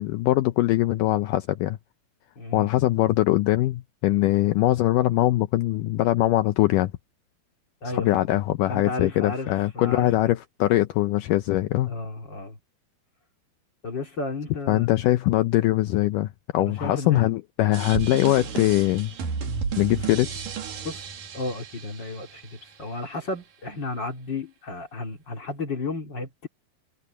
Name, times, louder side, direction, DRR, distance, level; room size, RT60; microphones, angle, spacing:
voice 1, 0.0-1.8 2.5-6.9 7.9-12.0 14.7-19.1 19.8-20.4, left 16 dB, 80° left, 1.9 m, -22 dB
voice 2, 2.4-2.7 7.8-8.2 8.7-10.1 11.9-12.6 13.8-15.0 16.6-17.3 20.8-26.5, left 3 dB, 35° left, 2.4 m, -33 dB
sound 1, 17.7-22.7, right 6 dB, 60° right, 4.2 m, -33 dB
omnidirectional pair, 4.4 m